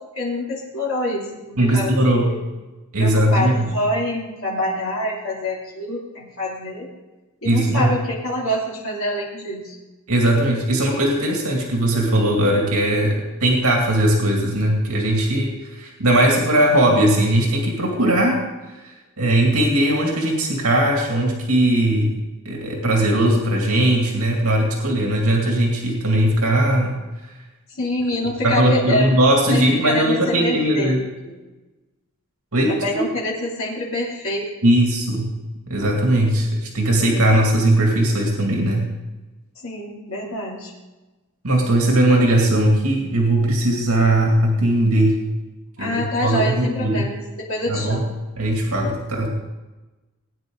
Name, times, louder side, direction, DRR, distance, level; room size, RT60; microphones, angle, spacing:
voice 1, 0.2-1.9 2.3-2.4 3.0-6.9 7.4-9.8 27.8-29.1 29.5-31.3 32.7-34.5 39.6-40.7 45.8-48.2, left 1 dB, 65° left, -5 dB, 3.0 m, -26 dB
voice 2, 1.6-2.3 2.9-3.7 7.4-7.9 10.1-18.4 18.7-22.2 22.5-27.0 28.4-31.0 32.5-32.8 34.6-35.3 35.7-38.9 41.4-45.2 45.8-47.1 47.7-48.0 48.4-49.3, right 1 dB, 75° right, 0 dB, 2.3 m, -19 dB
18.5 x 9.6 x 3.9 m, 1.1 s
head